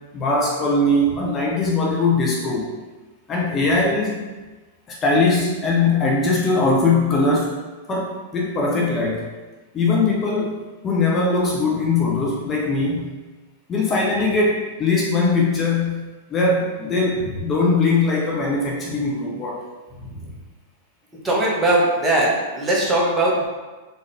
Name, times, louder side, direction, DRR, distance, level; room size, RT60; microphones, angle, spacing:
voice 1, 0.1-2.7 3.3-4.2 4.9-7.5 7.9-9.3 9.7-13.1 13.7-19.7, left 3 dB, 25° left, -2 dB, 0.7 m, -21 dB
voice 2, 21.2-23.5, right 1 dB, 15° right, -4 dB, 1.3 m, -20 dB
4.0 x 3.7 x 3.4 m, 1.2 s
hypercardioid pair, 100°, 0 cm